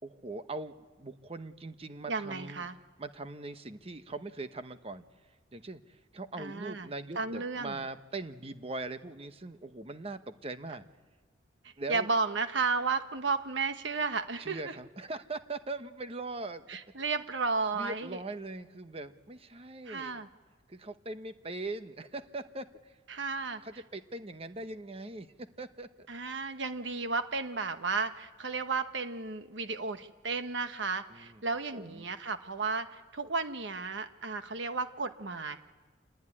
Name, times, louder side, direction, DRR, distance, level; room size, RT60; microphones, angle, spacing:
voice 1, 0.0-2.7 3.0-5.0 5.5-10.9 11.8-12.1 14.4-16.7 17.7-20.2 20.7-23.0 23.6-26.1 31.1-31.4 31.7-32.1, right 2 dB, 30° right, 10 dB, 1.0 m, -41 dB
voice 2, 2.1-2.8 6.4-6.9 7.2-7.8 11.6-14.7 16.7-18.2 19.9-20.3 23.1-23.6 26.1-35.6, right 4 dB, 75° right, 9 dB, 1.2 m, -33 dB
27.0 x 19.0 x 9.8 m, 1.3 s
head